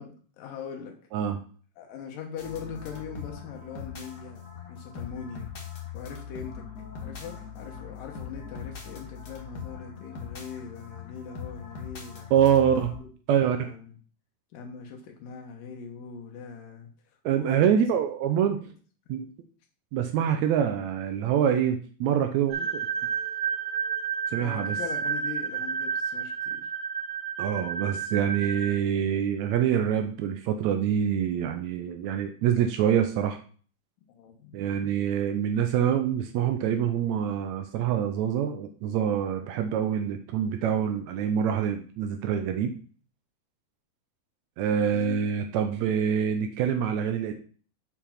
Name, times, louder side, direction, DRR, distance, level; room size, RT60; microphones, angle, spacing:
voice 1, 0.0-1.0 1.8-5.5 5.9-6.7 7.0-12.3 12.6-12.7 13.3-14.0 14.5-16.9 17.4-17.8 24.4-26.7 34.2-34.6 44.9-45.2, left 6 dB, 75° left, 1 dB, 2.8 m, -41 dB
sound 1, 2.4-13.0, left 6 dB, 45° left, 1.3 m, -41 dB
voice 2, 12.3-12.9 13.3-13.6 17.3-18.6 19.1-19.3 19.9-22.9 24.3-24.8 27.4-33.4 34.5-42.8 44.6-47.3, right 9 dB, 90° right, 6 dB, 1.6 m, -25 dB
sound 2, 22.5-28.7, right 7 dB, 60° right, 2.3 m, -31 dB
6.9 x 4.7 x 5.7 m, 0.42 s
omnidirectional pair, 3.9 m